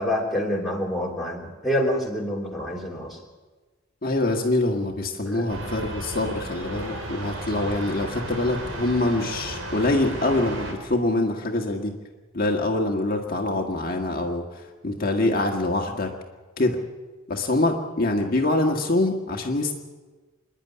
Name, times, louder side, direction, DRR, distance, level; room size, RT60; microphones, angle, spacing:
voice 1, 0.0-3.2 5.3-5.6, equal, ahead, 0 dB, 3.0 m, -27 dB
voice 2, 4.0-12.0 12.3-16.2 16.6-16.8 17.3-19.7, left 2 dB, 40° left, 1 dB, 1.7 m, -25 dB
sound 1, 5.5-10.7, right 1 dB, 65° right, 4.7 m, -34 dB
27.0 x 11.0 x 9.8 m, 1.3 s
head